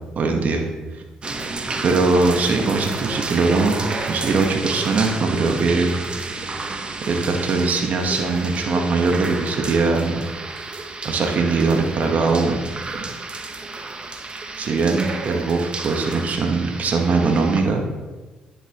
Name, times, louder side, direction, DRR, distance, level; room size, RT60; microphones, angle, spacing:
voice 1, 0.2-0.6 1.8-6.0 7.1-10.3 11.0-12.6 13.0-13.1 14.6-17.8, right 3 dB, 55° right, 3 dB, 1.1 m, -21 dB
sound 1, 1.2-17.6, right 3 dB, 35° right, 1.0 m, -31 dB
10.0 x 6.8 x 2.9 m, 1.3 s
supercardioid pair, 65°, 3 cm